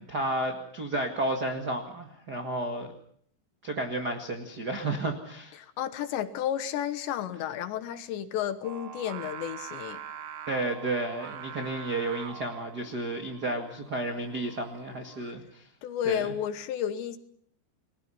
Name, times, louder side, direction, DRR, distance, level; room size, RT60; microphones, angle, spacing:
voice 1, 0.0-2.9 3.6-5.6 10.5-15.6 16.0-16.3, right 2 dB, 70° right, 4 dB, 0.9 m, -32 dB
voice 2, 5.6-10.0 15.8-17.2, left 10 dB, 75° left, 11 dB, 3.3 m, -32 dB
Singing, 8.6-15.3, right 9 dB, 85° right, 1.6 m, -44 dB
30.0 x 21.0 x 5.7 m, 0.62 s
omnidirectional pair, 5.5 m